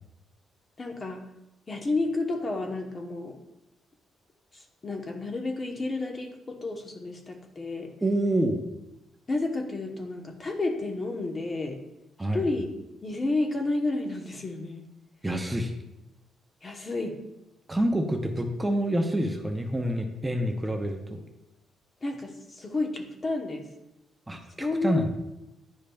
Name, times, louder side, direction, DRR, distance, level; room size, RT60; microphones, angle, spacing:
voice 1, 0.8-1.2 1.7-3.4 4.8-7.9 9.3-11.8 12.3-12.7 13.0-14.8 16.6-17.2 22.0-23.7 24.6-25.1, left 2 dB, 35° left, 3 dB, 1.0 m, -31 dB
voice 2, 8.0-8.7 12.2-12.4 15.2-15.7 17.7-21.2 24.3-25.1, right 1 dB, 15° right, 4 dB, 0.7 m, -27 dB
10.0 x 5.0 x 2.3 m, 0.93 s
cardioid pair, 90°, 0 cm